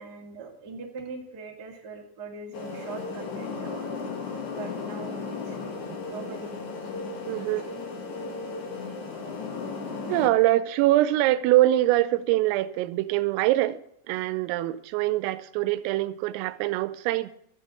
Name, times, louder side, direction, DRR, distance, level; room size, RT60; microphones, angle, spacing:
voice 1, 0.0-4.1 4.5-6.5 6.8-6.9 7.3-7.5 8.8-9.0, right 4 dB, 40° right, 1.4 m, -42 dB
sound 1, 2.5-10.3, left 4 dB, 55° left, 2.3 m, -35 dB
voice 2, 7.3-7.6 10.1-13.8 14.1-17.3, right 15 dB, 90° right, 3.3 m, -24 dB
14.5 x 7.7 x 8.3 m
omnidirectional pair, 5.8 m